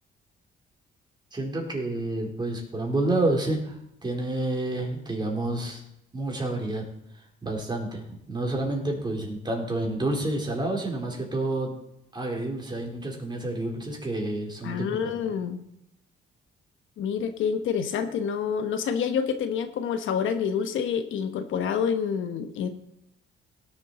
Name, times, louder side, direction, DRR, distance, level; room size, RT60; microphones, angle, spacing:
voice 1, 1.3-5.8 6.1-6.8 7.4-11.7 12.1-15.1, right 2 dB, 20° right, 0 dB, 3.8 m, -29 dB
voice 2, 14.6-15.6 17.0-22.7, left 7 dB, 80° left, 9 dB, 1.1 m, -27 dB
17.0 x 7.2 x 4.2 m, 0.77 s
cardioid pair, 90°, 20 cm